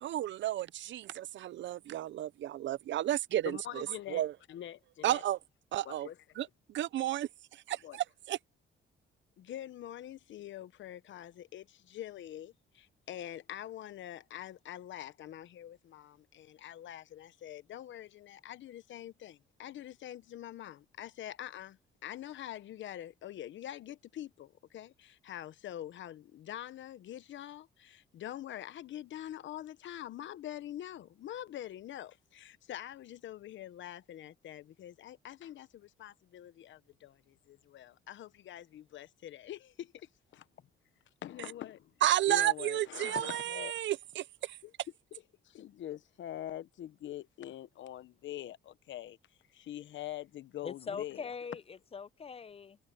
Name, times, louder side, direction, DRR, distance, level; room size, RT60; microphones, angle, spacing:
voice 1, 0.0-4.3 5.0-5.4 5.7-6.1 6.4-8.4 42.0-44.6, right 13 dB, 70° right, 0.6 m, -32 dB
voice 2, 3.4-4.2 4.5-5.2 5.8-6.2 7.8-8.0 9.4-40.7 41.2-41.9 42.3-43.8 44.6-44.7 45.1-49.2 49.5-51.3, left 12 dB, 70° left, 1.0 m, -45 dB
voice 3, 50.6-52.8, left 5 dB, 30° left, 0.6 m, -42 dB
cardioid pair, 90°, 20 cm